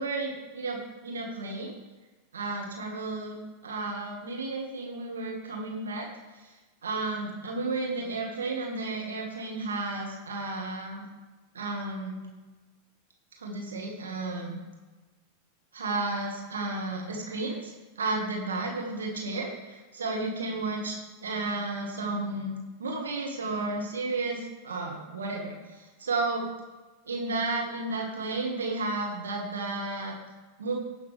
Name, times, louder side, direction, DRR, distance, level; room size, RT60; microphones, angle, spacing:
voice 1, 0.0-1.7 2.3-6.1 6.8-11.1 11.5-12.3 13.4-14.6 15.7-17.7 18.0-22.5 22.8-26.5 27.1-30.2 30.6-30.8, right 3 dB, 80° right, 0 dB, 1.5 m, -32 dB
16.5 x 5.9 x 3.3 m, 1.2 s
hypercardioid pair, 95°, 0 cm